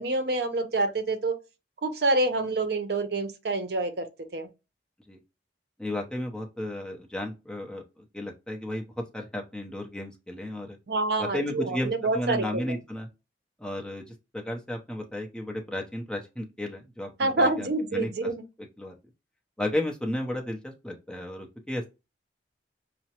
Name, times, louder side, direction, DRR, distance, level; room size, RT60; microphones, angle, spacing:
voice 1, 0.0-1.3 1.8-4.1 4.3-4.5 10.9-12.6 17.2-18.4, right 2 dB, 65° right, 0.6 m, -27 dB
voice 2, 5.8-8.9 9.1-10.8 11.2-13.1 13.6-18.3 18.8-18.9 19.6-21.8, left 1 dB, 5° left, 0.6 m, -33 dB
5.6 x 2.0 x 2.8 m
head